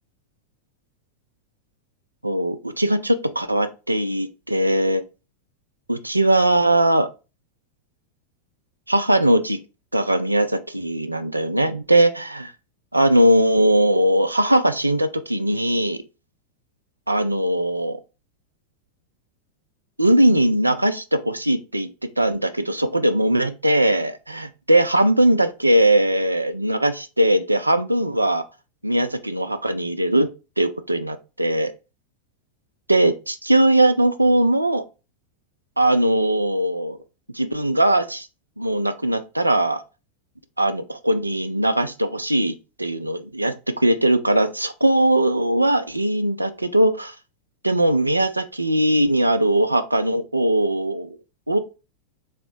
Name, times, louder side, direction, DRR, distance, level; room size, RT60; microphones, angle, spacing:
voice 1, 2.2-5.0 5.9-7.1 8.9-9.6 9.9-12.5 12.9-16.0 17.1-18.0 20.0-21.9 22.2-28.4 28.8-30.3 30.6-31.7 32.9-34.8 35.8-37.0 37.3-38.3 38.6-39.8 40.6-47.2 47.6-51.2 51.5-51.6, right 1 dB, 85° right, 0.4 m, -20 dB
4.1 x 2.1 x 4.3 m
figure-of-eight pair, 90°, 0 cm